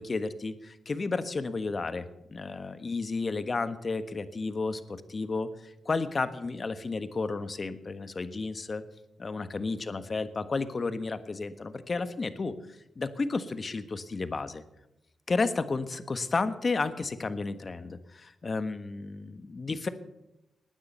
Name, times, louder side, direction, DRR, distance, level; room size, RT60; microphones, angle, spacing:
voice 1, 0.0-4.8 5.1-8.8 9.2-12.5 13.0-14.6 15.3-19.9, left 3 dB, 45° left, 11 dB, 1.4 m, -32 dB
19.5 x 9.8 x 6.8 m, 0.90 s
cardioid pair, 55°, 0 cm